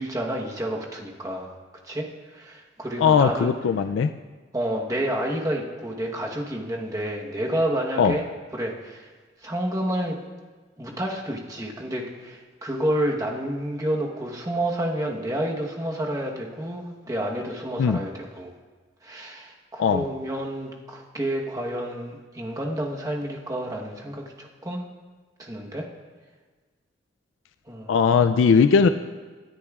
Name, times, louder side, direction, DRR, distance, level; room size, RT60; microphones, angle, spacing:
voice 1, 0.0-1.5 1.8-3.5 4.5-8.2 8.5-9.1 9.4-10.2 10.8-18.5 19.0-24.8 25.4-25.9 27.7-28.0, right 1 dB, 20° right, 0 dB, 1.0 m, -29 dB
voice 2, 3.0-4.1 8.0-8.2 17.8-18.0 19.8-20.0 27.9-28.9, left 6 dB, 80° left, 9 dB, 0.3 m, -19 dB
18.0 x 10.0 x 2.4 m, 1.4 s
head